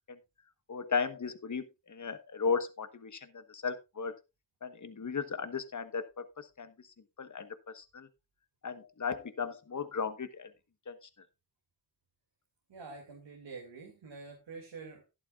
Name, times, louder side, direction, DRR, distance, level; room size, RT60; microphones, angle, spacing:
voice 1, 0.7-4.1 4.6-6.7 7.2-7.5 7.7-8.1 8.6-10.5 10.9-11.0, left 5 dB, 45° left, 11 dB, 1.2 m, -35 dB
voice 2, 12.7-15.0, right 4 dB, 85° right, 1 dB, 2.4 m, -47 dB
11.5 x 11.5 x 2.4 m, 0.25 s
cardioid pair, 60°, 42 cm